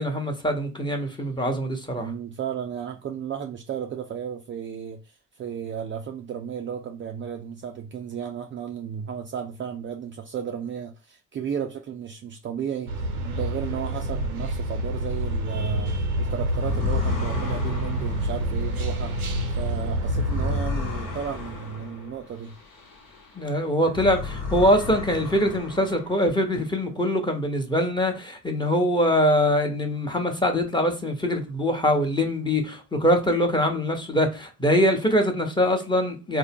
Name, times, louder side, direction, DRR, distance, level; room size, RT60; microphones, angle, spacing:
voice 1, 0.0-2.1 23.3-36.4, equal, 10° left, 1.0 m, -23 dB
voice 2, 1.9-19.1 19.5-22.6, right 8 dB, 30° right, 0.5 m, -34 dB
sound 1, 12.9-20.6, right 1 dB, 85° right, 0.8 m, -27 dB
sound 2, 16.5-23.4 23.8-26.5, left 3 dB, 50° left, 1.2 m, -33 dB
4.4 x 2.1 x 3.5 m
figure-of-eight pair, 55°, 42 cm